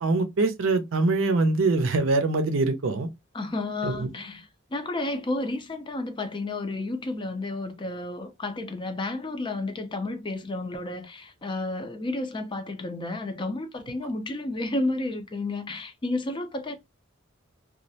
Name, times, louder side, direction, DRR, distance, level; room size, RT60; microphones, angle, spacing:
voice 1, 0.0-3.1 3.8-4.1, right 3 dB, 85° right, 0.5 m, -23 dB
voice 2, 3.3-16.7, left 2 dB, 25° left, 0.4 m, -31 dB
2.3 x 2.0 x 2.6 m
head